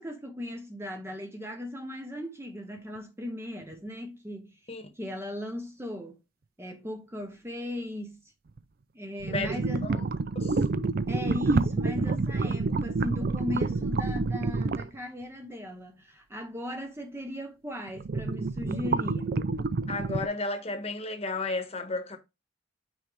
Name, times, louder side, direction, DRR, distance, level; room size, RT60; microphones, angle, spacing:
voice 1, 0.0-4.6 5.0-6.2 6.6-8.2 8.9-9.9 11.1-19.5, left 1 dB, 15° right, 0.8 m, -37 dB
sound 1, 3.7-3.8 8.6-8.7 9.2-14.9 17.9-20.3, right 3 dB, 50° right, 0.4 m, -28 dB
voice 2, 9.3-10.0 10.4-10.6 19.9-22.2, left 3 dB, 30° left, 1.2 m, -33 dB
6.2 x 4.7 x 3.2 m
head